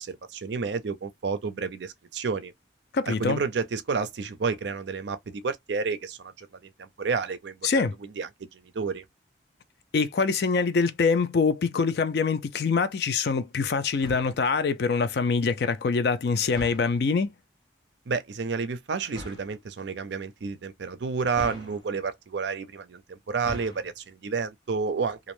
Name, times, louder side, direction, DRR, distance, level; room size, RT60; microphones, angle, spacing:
voice 1, 0.0-2.5 3.1-7.7 8.0-9.1 18.1-25.3, right 5 dB, 70° right, 0.5 m, -30 dB
voice 2, 2.9-3.4 7.6-7.9 9.9-17.3, left 4 dB, 60° left, 0.4 m, -24 dB
sound 1, 13.9-14.5 16.5-17.1 19.1-19.6 21.3-22.1 23.3-24.0, left 1 dB, 20° left, 0.8 m, -41 dB
2.5 x 2.0 x 3.0 m
head